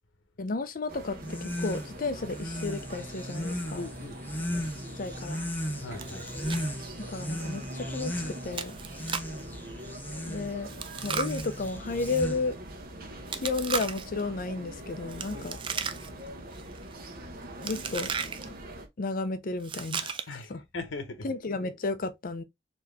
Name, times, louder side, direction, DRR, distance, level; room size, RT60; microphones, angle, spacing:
voice 1, 0.4-3.8 5.0-5.4 7.0-8.7 10.2-10.7 11.0-12.6 13.3-15.6 17.6-18.1 18.4-18.5 19.0-20.1 20.5-20.6 21.2-22.4, left 3 dB, 45° left, 0.5 m, -33 dB
sound 1, 0.9-18.9, right 1 dB, 50° right, 1.0 m, -43 dB
sound 2, 1.2-12.7, equal, 10° left, 0.7 m, -36 dB
voice 2, 3.8-4.2 5.8-6.3 15.3-15.5 20.3-21.3, left 2 dB, 90° left, 0.9 m, -39 dB
Chewing mastication, 6.0-6.6 6.9-7.0 7.5-7.7 8.5-9.4 10.7-12.2 13.3-14.2 15.1-16.3 16.5-16.9 17.6-18.4 19.6-20.4, right 6 dB, 25° right, 0.4 m, -36 dB
4.3 x 2.8 x 3.2 m
head